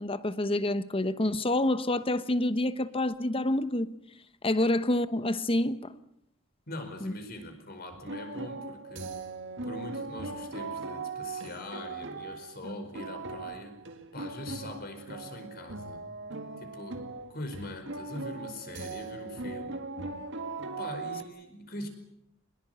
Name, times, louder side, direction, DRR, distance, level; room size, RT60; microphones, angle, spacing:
voice 1, 0.0-3.9 4.4-5.9 7.0-7.1, left 1 dB, 25° left, 1.0 m, -28 dB
voice 2, 6.7-9.1 9.6-13.7 14.1-16.0 16.6-19.8 20.8-21.9, left 1 dB, 45° left, 5.0 m, -42 dB
sound 1, 7.9-21.2, right 3 dB, 60° right, 2.1 m, -39 dB
23.5 x 21.5 x 8.0 m
head